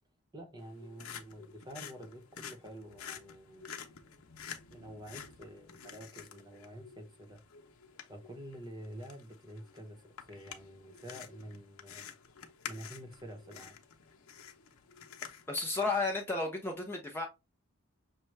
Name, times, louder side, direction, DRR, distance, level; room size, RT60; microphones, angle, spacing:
voice 1, 0.3-3.7 4.7-7.4 8.1-12.1 12.7-13.8, equal, 20° right, 0.8 m, -48 dB
sound 1, 0.6-16.2, left 8 dB, 90° left, 0.8 m, -50 dB
voice 2, 15.5-17.2, left 3 dB, 10° left, 0.5 m, -33 dB
6.2 x 2.2 x 3.2 m
head